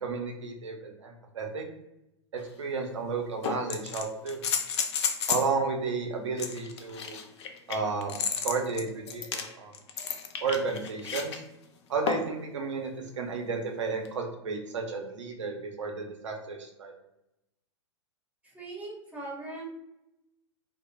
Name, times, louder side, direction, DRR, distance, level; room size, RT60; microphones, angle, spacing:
voice 1, 0.0-1.6 2.3-4.4 5.3-7.2 7.7-9.7 10.4-11.4 11.9-12.9 13.2-16.9, right 4 dB, 75° right, 2 dB, 0.6 m, -32 dB
sound 1, 2.4-2.5 3.4-5.5 6.4-11.4 12.1-12.4 14.0-14.1, left 7 dB, 65° left, 0.4 m, -32 dB
voice 2, 18.4-19.7, right 2 dB, 10° right, -2 dB, 0.7 m, -40 dB
2.1 x 2.0 x 3.1 m, 0.88 s
figure-of-eight pair, 100°, 16 cm